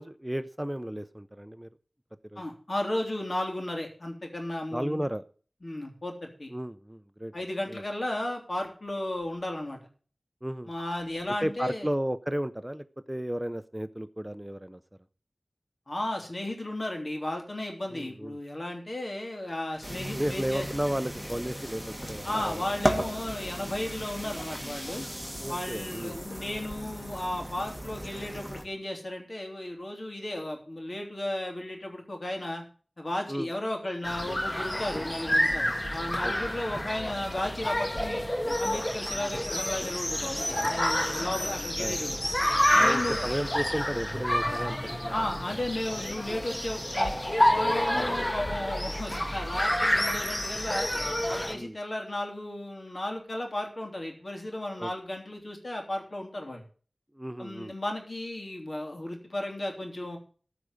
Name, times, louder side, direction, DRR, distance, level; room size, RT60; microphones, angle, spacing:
voice 1, 0.0-1.7 2.3-2.4 4.7-5.2 6.5-7.3 7.7-7.8 10.4-10.7 11.4-14.8 17.9-18.4 20.2-22.7 25.4-26.2 33.3-33.5 36.2-36.3 40.6-41.0 41.8-42.0 42.8-45.2 47.9-48.2 51.5-51.8 54.8-54.9 57.2-57.7, equal, 15° right, 12 dB, 0.6 m, -33 dB
voice 2, 2.3-5.0 5.6-6.5 7.3-9.8 10.7-11.9 15.9-20.7 22.2-25.0 25.5-32.6 33.0-38.2 38.6-42.2 42.7-43.3 45.1-47.2 47.5-50.9 51.3-56.6 57.4-60.2, left 1 dB, 55° left, 2 dB, 3.3 m, -34 dB
sound 1, 19.8-28.6, equal, 5° left, 2.4 m, -36 dB
sound 2, 34.0-51.5, left 1 dB, 25° left, 1.6 m, -28 dB
14.5 x 5.1 x 8.2 m, 0.42 s
wide cardioid pair, 55°, 0 cm